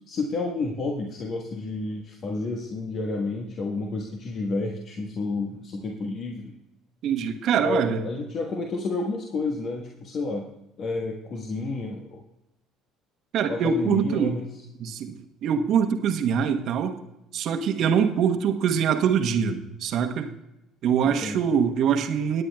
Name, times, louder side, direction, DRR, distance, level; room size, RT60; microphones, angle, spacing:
voice 1, 0.1-6.5 7.6-10.4 10.8-12.2 13.5-14.5 21.0-21.4, left 3 dB, 50° left, 1 dB, 1.3 m, -30 dB
voice 2, 7.0-8.1 13.3-14.4 14.8-17.0 17.3-20.3 20.8-22.4, right 7 dB, 60° right, 6 dB, 1.0 m, -24 dB
18.5 x 9.0 x 2.3 m, 0.90 s
hypercardioid pair, 60°, 0 cm